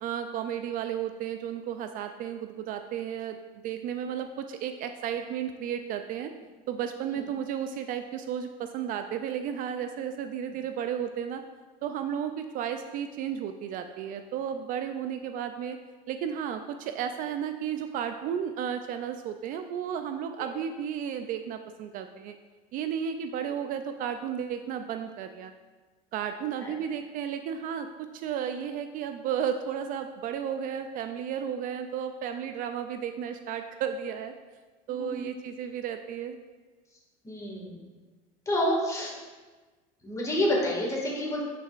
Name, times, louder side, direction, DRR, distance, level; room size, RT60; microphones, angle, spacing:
voice 1, 0.0-3.4 3.6-6.3 6.7-11.4 11.8-15.8 16.1-22.4 22.7-25.5 26.1-27.9 28.1-34.3 34.9-36.4, right 8 dB, 50° right, 8 dB, 0.4 m, -33 dB
voice 2, 34.9-35.3 37.2-37.8 38.5-39.1 40.0-41.4, left 1 dB, 15° left, -3 dB, 2.0 m, -28 dB
9.6 x 5.6 x 2.5 m, 1.3 s
supercardioid pair, 110°, 18 cm